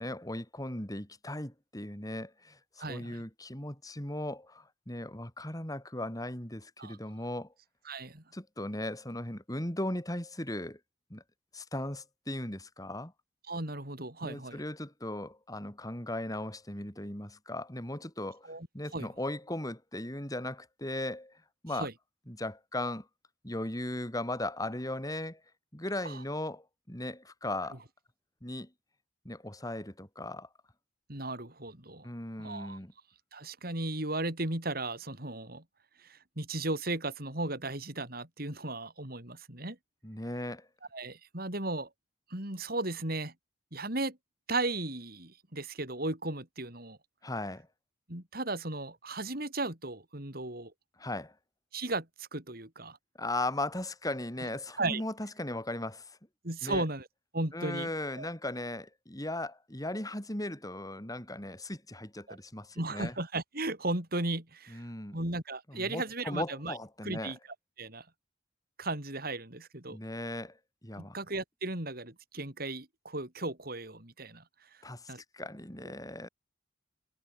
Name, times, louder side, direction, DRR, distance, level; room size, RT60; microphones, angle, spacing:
voice 1, 0.0-7.5 8.3-10.8 11.1-11.2 11.5-13.1 14.2-21.9 22.3-23.1 23.4-25.4 25.7-27.8 28.4-28.7 29.2-30.5 32.0-32.9 40.0-40.7 47.2-47.7 51.0-51.3 53.2-56.2 56.6-56.8 57.5-63.1 64.7-65.2 65.7-67.4 69.9-71.1 74.8-76.3, left 1 dB, 20° left, 4.6 m, -37 dB
voice 2, 2.8-3.2 6.8-7.0 7.9-8.2 13.5-14.6 18.5-18.7 18.9-19.1 21.7-21.9 26.0-26.2 31.1-32.1 32.4-32.8 33.3-35.6 36.0-39.8 40.9-41.9 42.3-43.3 43.7-44.2 44.5-47.0 48.1-50.7 51.7-53.0 54.4-54.5 54.8-55.0 56.4-57.1 57.3-57.9 58.2-58.3 62.3-62.4 62.8-64.9 65.1-66.7 67.0-67.4 67.8-68.1 68.8-70.0 71.0-74.4 75.1-75.2, right 2 dB, 55° right, 5.4 m, -35 dB
head